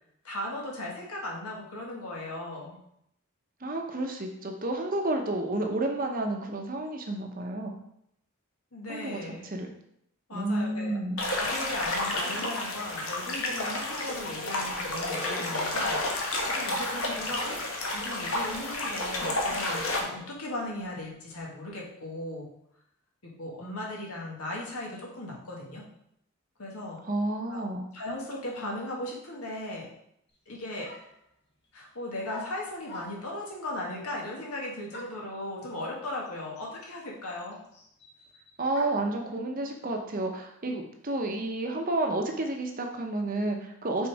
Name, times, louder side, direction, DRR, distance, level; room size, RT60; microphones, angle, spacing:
voice 1, 0.2-2.8 8.7-9.4 10.3-10.9 11.3-22.5 23.2-25.9 26.6-27.0 27.5-27.6 27.9-29.9 30.5-30.9 31.7-37.6, left 1 dB, 80° left, -2 dB, 1.8 m, -37 dB
voice 2, 3.6-7.8 8.9-9.7 10.3-11.2 27.1-27.9 38.6-44.1, right 2 dB, 40° right, 3 dB, 0.9 m, -30 dB
sound 1, 11.2-20.0, left 2 dB, 65° left, 1.2 m, -31 dB
sound 2, 30.3-30.4 30.8-31.3 32.3-33.4 34.9-35.3 36.3-36.4 36.6-39.2, left 1 dB, 50° left, 1.1 m, -46 dB
6.2 x 4.0 x 4.8 m, 0.74 s
head